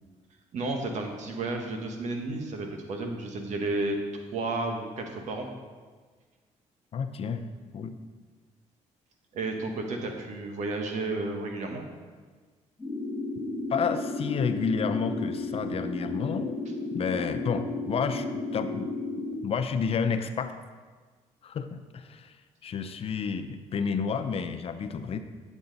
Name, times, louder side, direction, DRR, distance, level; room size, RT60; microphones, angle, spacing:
voice 1, 0.5-4.0 4.3-5.5 9.3-11.8, right 2 dB, 65° right, 3 dB, 1.4 m, -32 dB
voice 2, 6.9-7.5 7.7-8.0 13.7-16.6 16.9-18.9 19.4-20.5 21.4-22.3 22.6-25.2, left 6 dB, 50° left, 9 dB, 0.5 m, -30 dB
sound 1, 12.8-19.3, left 2 dB, 10° left, 2.1 m, -33 dB
8.7 x 7.2 x 4.0 m, 1.5 s
cardioid pair, 95°, 13 cm